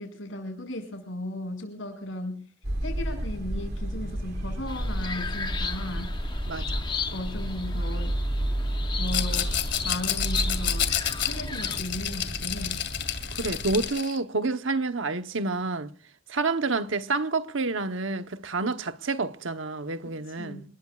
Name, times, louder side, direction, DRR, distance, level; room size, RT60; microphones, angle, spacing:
voice 1, 0.0-2.5 2.8-6.2 7.1-8.2 9.0-10.9 11.2-12.8 20.0-20.6, left 1 dB, 85° left, 6.3 m, -36 dB
sound 1, 2.6-13.9, right 1 dB, 55° right, 2.7 m, -31 dB
sound 2, 4.7-11.8, left 5 dB, 25° left, 0.9 m, -36 dB
voice 2, 6.5-6.8 13.3-15.9 16.3-20.6, right 3 dB, 90° right, 1.1 m, -29 dB
Rattle, 9.1-14.2, left 11 dB, 65° left, 2.2 m, -30 dB
28.5 x 20.5 x 2.4 m
head